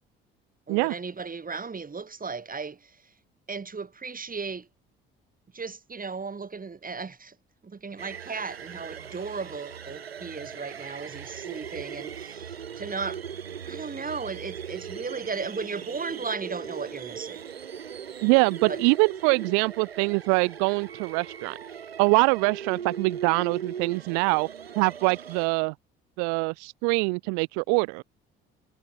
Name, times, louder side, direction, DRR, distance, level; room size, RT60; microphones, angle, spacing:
voice 1, 0.7-3.1 3.5-4.7 5.5-7.4 7.6-13.3 13.6-17.4 18.6-18.8, right 4 dB, 30° right, 5.4 m, -36 dB
sound 1, 8.0-25.5, right 8 dB, 85° right, 3.8 m, -39 dB
voice 2, 18.2-21.6 22.0-24.5 24.8-25.7 26.2-28.0, right 40 dB or more, 65° right, 0.7 m, -24 dB
figure-of-eight pair, 50°, 30 cm